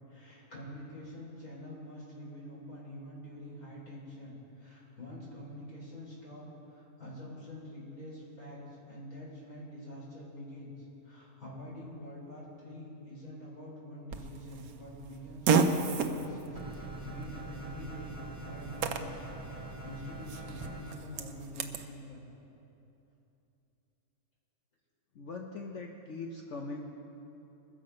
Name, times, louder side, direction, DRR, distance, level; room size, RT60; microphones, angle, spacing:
voice 1, 0.1-18.1 18.4-22.3, equal, 75° left, -6 dB, 4.6 m, -46 dB
Fart, 14.1-21.9, right 5 dB, 75° right, 1.2 m, -34 dB
sound 1, 16.6-20.9, right 2 dB, 25° right, 1.2 m, -43 dB
voice 2, 25.1-26.9, left 3 dB, 60° left, 1 dB, 1.1 m, -41 dB
21.5 x 7.3 x 5.3 m, 2.9 s
omnidirectional pair, 1.6 m